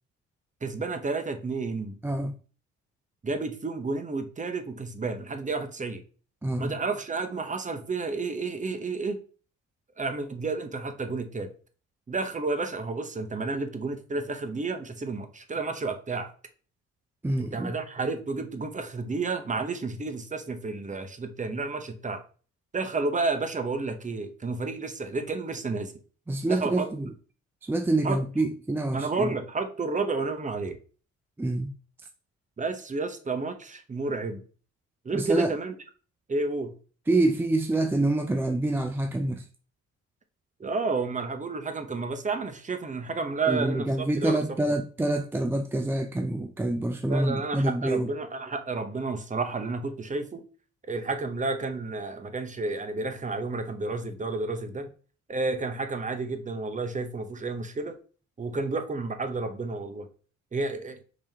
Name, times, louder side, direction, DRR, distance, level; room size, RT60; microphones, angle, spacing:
voice 1, 0.6-2.0 3.2-6.0 6.6-9.2 10.0-11.5 12.1-16.3 17.4-22.2 22.7-25.9 26.5-26.9 28.0-28.2 28.9-30.8 32.6-34.4 35.0-35.7 36.3-36.7 40.6-44.7 47.1-50.4 50.9-54.9 55.3-57.9 58.4-60.1 60.5-61.0, right 3 dB, 25° right, 0.8 m, -31 dB
voice 2, 2.0-2.4 6.4-6.8 17.2-17.7 26.3-27.1 27.6-29.4 31.4-31.7 35.1-35.5 37.1-39.4 43.5-48.1, right 2 dB, 10° right, 0.3 m, -26 dB
4.9 x 3.5 x 2.8 m
cardioid pair, 90°, 30 cm